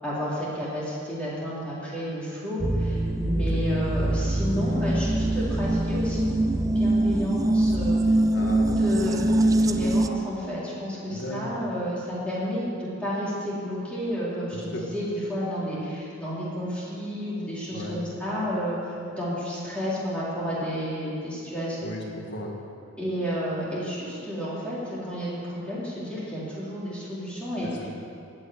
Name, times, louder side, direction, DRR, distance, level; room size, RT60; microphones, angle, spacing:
voice 1, 0.0-6.3 6.6-21.8 23.0-27.9, equal, 5° left, -9 dB, 3.9 m, -31 dB
sound 1, 2.6-10.1, right 1 dB, 15° right, 0.4 m, -23 dB
voice 2, 8.3-8.8 11.1-11.6 14.5-14.8 17.7-18.0 21.8-22.5 27.6-27.9, left 1 dB, 60° left, 0 dB, 2.0 m, -36 dB
15.0 x 6.6 x 9.6 m, 2.6 s
head